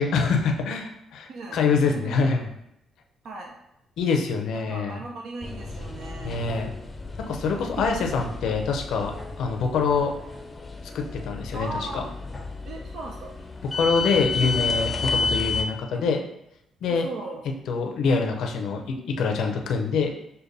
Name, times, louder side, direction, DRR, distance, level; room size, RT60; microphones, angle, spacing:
voice 1, 0.0-2.5 4.0-5.0 6.2-6.7 7.3-9.1 9.4-10.1 10.9-12.0 13.7-16.2 16.8-17.0 17.7-20.1, left 5 dB, 75° left, 3 dB, 0.5 m, -25 dB
voice 2, 1.9-2.5 3.2-3.6 4.5-6.4 7.5-8.2 11.5-12.1 12.6-13.4 15.9-16.0 16.9-17.4, right 2 dB, 70° right, 0 dB, 0.5 m, -38 dB
sound 1, 5.4-15.6, left 3 dB, 25° left, 0.5 m, -31 dB
6.5 x 2.2 x 2.6 m, 0.80 s
cardioid pair, 90°, 0 cm